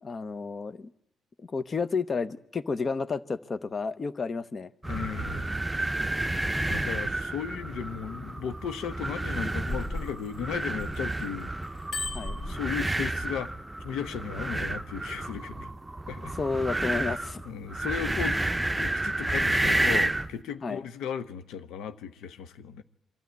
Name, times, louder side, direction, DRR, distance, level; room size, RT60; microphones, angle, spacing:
voice 1, 0.0-0.9 1.4-4.7 12.1-12.4 16.4-17.4 20.6-20.8, left 4 dB, 35° left, 0.9 m, -31 dB
voice 2, 4.8-5.6 6.7-11.5 12.4-13.5 13.8-15.7 16.1-16.3 17.4-22.8, left 8 dB, 85° left, 0.8 m, -36 dB
sound 1, 4.8-20.3, right 2 dB, 15° right, 0.8 m, -30 dB
Bicycle bell, 9.3-11.2 11.6-13.3 13.9-14.1, left 2 dB, 55° left, 3.0 m, -36 dB
24.0 x 12.5 x 9.4 m
cardioid pair, 90°, 0 cm